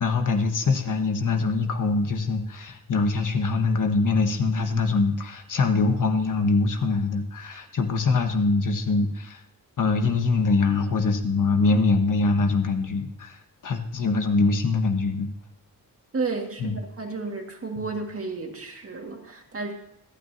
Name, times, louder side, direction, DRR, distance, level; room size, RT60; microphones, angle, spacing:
voice 1, 0.0-9.4 9.8-15.3 16.6-16.7 17.8-17.9, left 3 dB, 60° left, 5 dB, 1.4 m, -23 dB
voice 2, 16.1-19.7, right 4 dB, 40° right, 2 dB, 1.9 m, -32 dB
25.5 x 9.1 x 2.8 m, 0.81 s
wide cardioid pair, 155°, 35 cm